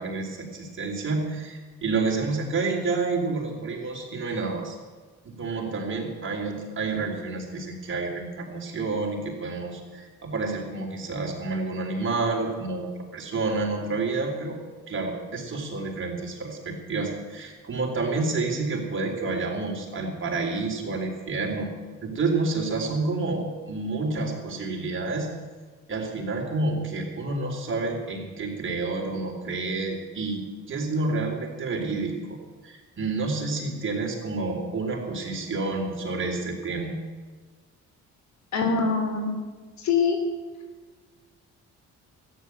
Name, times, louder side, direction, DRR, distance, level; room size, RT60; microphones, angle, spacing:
voice 1, 0.0-4.8 5.2-14.6 14.9-21.7 22.0-25.3 25.9-30.4 30.7-32.4 32.6-36.9, right 3 dB, 40° right, 0 dB, 4.0 m, -29 dB
voice 2, 38.5-39.3 39.8-40.2, left 5 dB, 65° left, 5 dB, 3.1 m, -23 dB
13.5 x 10.0 x 7.9 m, 1.4 s
cardioid pair, 90°, 30 cm